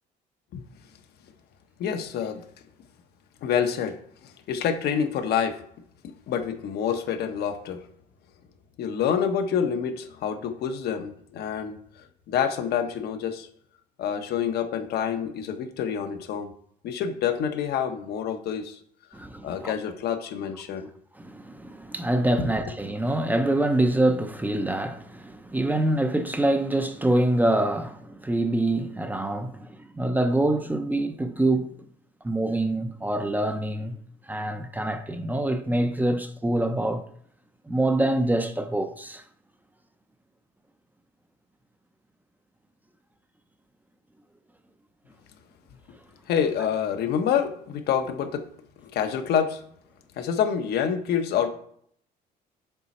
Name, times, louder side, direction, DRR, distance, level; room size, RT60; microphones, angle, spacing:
voice 1, 1.8-2.4 3.4-4.0 4.2-5.6 6.0-7.8 8.8-11.8 12.3-13.5 14.0-16.5 16.8-18.8 19.4-20.9 22.4-22.5 46.3-48.4 48.8-49.6 50.2-51.5, left 8 dB, 70° left, 0.9 m, -27 dB
voice 2, 19.1-19.7 21.2-31.8 32.2-34.0 34.3-37.0 37.7-39.2, right 1 dB, 10° right, 0.5 m, -25 dB
6.9 x 3.9 x 4.3 m
cardioid pair, 110°, 17 cm